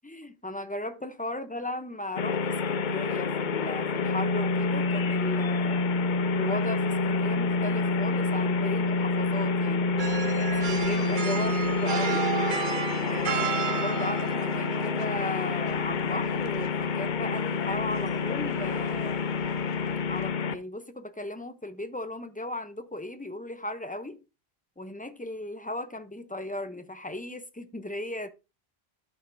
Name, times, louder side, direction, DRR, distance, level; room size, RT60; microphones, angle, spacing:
voice 1, 0.0-5.9 6.3-10.0 10.7-12.3 13.1-19.2 20.1-24.2 24.8-28.3, left 1 dB, 10° left, 0.5 m, -36 dB
sound 1, 2.2-20.5, left 4 dB, 55° left, 0.7 m, -28 dB
sound 2, 10.0-20.3, right 8 dB, 55° right, 0.8 m, -35 dB
12.0 x 5.6 x 2.6 m
omnidirectional pair, 1.0 m